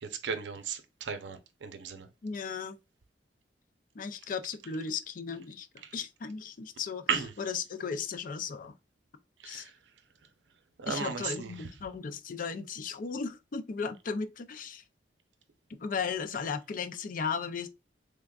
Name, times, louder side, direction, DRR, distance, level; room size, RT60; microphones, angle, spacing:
voice 1, 0.0-2.1 5.8-5.9 7.1-7.3 9.4-9.7 10.8-11.5, right 6 dB, 80° right, 0.6 m, -35 dB
voice 2, 2.2-2.8 3.9-5.7 5.9-7.0 7.4-8.7 9.4-9.7 10.9-14.8 15.8-17.7, left 5 dB, 50° left, 0.4 m, -36 dB
3.6 x 3.4 x 2.3 m
head